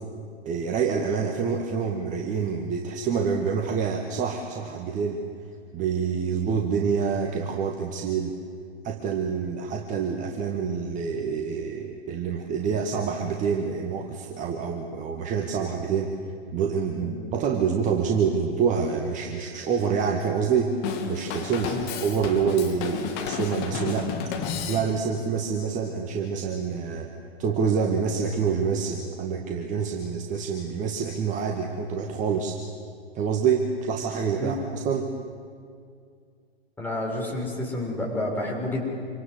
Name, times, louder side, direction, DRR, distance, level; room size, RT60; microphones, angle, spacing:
voice 1, 0.5-5.2 5.7-8.4 8.8-16.1 16.5-20.8 21.1-24.2 24.7-27.1 27.4-32.6 33.1-35.1, right 6 dB, 25° right, 3 dB, 1.9 m, -27 dB
Drum kit / Drum, 20.8-25.2, left 6 dB, 30° left, 2.9 m, -32 dB
voice 2, 36.8-38.8, left 1 dB, 5° left, -2 dB, 6.4 m, -29 dB
27.0 x 25.5 x 8.0 m, 2.2 s
figure-of-eight pair, 115°, 32 cm